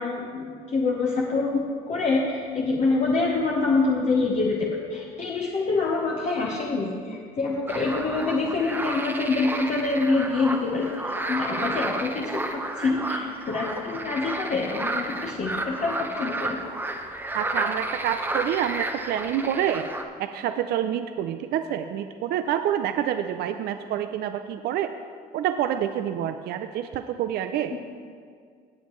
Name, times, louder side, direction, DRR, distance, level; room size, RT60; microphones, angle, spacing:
voice 1, 0.0-16.6 27.7-27.8, left 3 dB, 45° left, -2 dB, 1.1 m, -26 dB
sound 1, 7.7-20.0, right 2 dB, 10° right, 0.8 m, -32 dB
voice 2, 17.3-19.9 20.2-24.9 25.3-27.8, right 10 dB, 70° right, 8 dB, 0.4 m, -27 dB
17.5 x 7.4 x 3.1 m, 2.1 s
cardioid pair, 110°, 17 cm